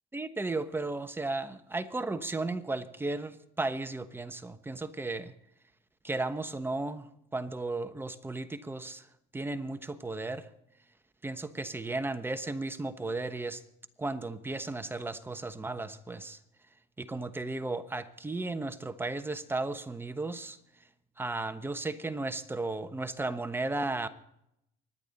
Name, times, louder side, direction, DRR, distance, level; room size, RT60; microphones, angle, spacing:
voice 1, 0.1-5.3 6.0-7.0 7.3-9.0 9.3-10.5 11.2-13.6 14.0-16.4 17.0-20.6 21.2-24.1, right 2 dB, 15° right, 9 dB, 1.1 m, -35 dB
25.0 x 10.5 x 4.1 m, 0.77 s
cardioid pair, 100°, 16 cm